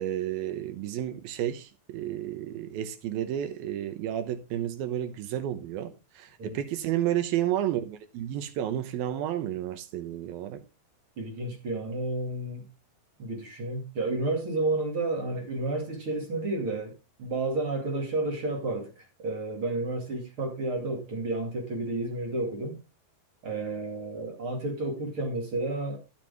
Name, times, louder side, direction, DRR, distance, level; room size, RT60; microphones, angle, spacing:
voice 1, 0.0-10.6, right 11 dB, 80° right, 2.9 m, -31 dB
voice 2, 11.2-12.6 13.2-16.9 17.2-22.8 23.4-26.0, right 2 dB, 40° right, 2.9 m, -31 dB
12.0 x 7.0 x 3.5 m
omnidirectional pair, 4.2 m